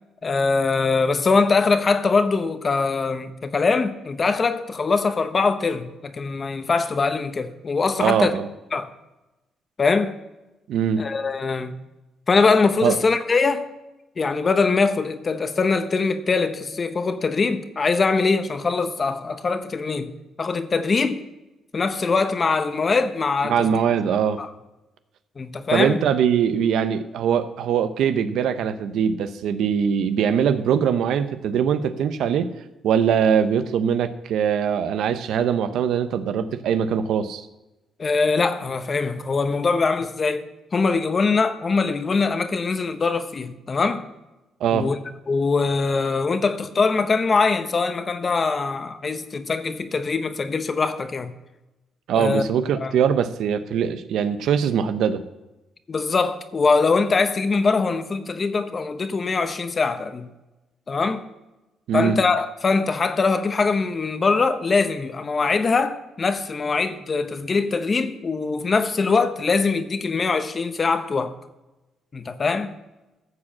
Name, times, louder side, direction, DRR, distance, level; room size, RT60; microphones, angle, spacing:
voice 1, 0.2-8.3 8.7-8.9 9.8-10.2 11.0-11.7 12.3-13.7 14.2-20.1 20.4-21.2 21.7-23.7 24.4-24.5 25.4-26.0 38.0-44.1 44.7-45.0 45.3-51.3 52.1-52.4 52.8-53.0 55.9-60.3 60.9-61.2 61.9-71.3 72.1-72.7, left 4 dB, 35° left, 0.9 m, -22 dB
voice 2, 8.0-8.5 10.7-11.0 12.8-13.0 23.5-24.4 25.7-32.5 32.8-37.5 44.6-44.9 52.1-55.2 61.9-62.2, right 8 dB, 80° right, 0.7 m, -22 dB
14.0 x 4.9 x 7.4 m
cardioid pair, 90°, 0 cm